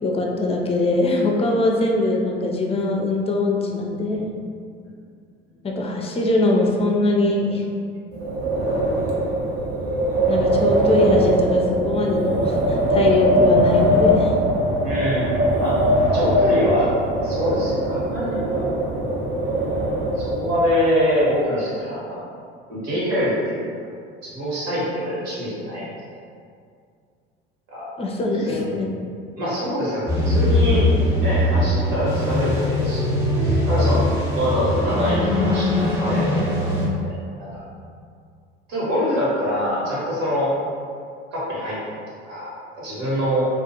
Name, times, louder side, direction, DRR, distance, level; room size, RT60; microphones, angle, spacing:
voice 1, 0.0-4.4 5.6-7.6 10.3-14.3 28.0-28.9, left 2 dB, 20° left, 0 dB, 0.4 m, -21 dB
Wind, 8.1-20.7, equal, 55° right, 0.6 m, -21 dB
voice 2, 14.8-15.8 16.1-16.9 17.2-18.6 19.9-22.2 22.7-23.6 24.2-26.1 27.7-27.9 28.4-28.6 29.4-33.1 33.4-35.7 36.0-36.3 37.0-37.6 38.7-40.5 41.3-41.8 42.2-42.5 42.8-43.5, equal, 70° right, -8 dB, 1.1 m, -24 dB
sound 1, 30.1-36.9, left 1 dB, 10° right, 0.7 m, -21 dB
2.3 x 2.1 x 2.8 m, 2.2 s
hypercardioid pair, 70°, 29 cm